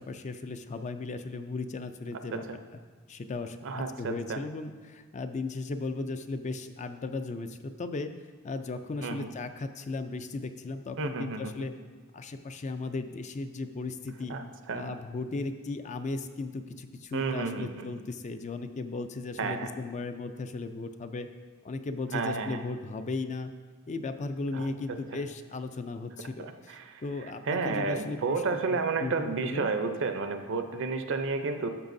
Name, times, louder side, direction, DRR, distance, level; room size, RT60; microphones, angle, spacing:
voice 1, 0.0-2.4 3.1-8.1 8.4-11.7 12.1-14.3 14.7-21.3 21.6-23.5 23.9-28.6 29.0-29.7, left 3 dB, 35° left, 9 dB, 0.4 m, -36 dB
voice 2, 3.6-4.4 9.0-9.3 11.0-11.7 14.3-14.9 17.1-17.9 19.4-19.7 22.1-22.6 24.5-25.0 26.4-27.0 27.5-31.7, right 4 dB, 60° right, 7 dB, 0.6 m, -31 dB
12.5 x 7.0 x 2.6 m, 1.5 s
head